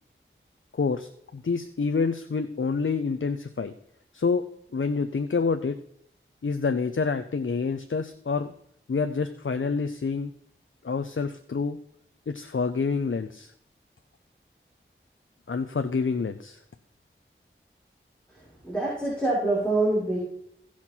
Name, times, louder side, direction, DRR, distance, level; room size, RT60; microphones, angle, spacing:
voice 1, 0.7-3.7 4.1-4.5 4.7-5.8 6.4-8.5 8.9-10.3 10.8-11.8 12.3-13.5 15.5-16.6, left 4 dB, 70° left, 8 dB, 0.6 m, -27 dB
voice 2, 18.3-20.2, right 2 dB, 5° left, -7 dB, 5.3 m, -26 dB
16.5 x 5.8 x 4.5 m, 0.71 s
wide cardioid pair, 45°, 21 cm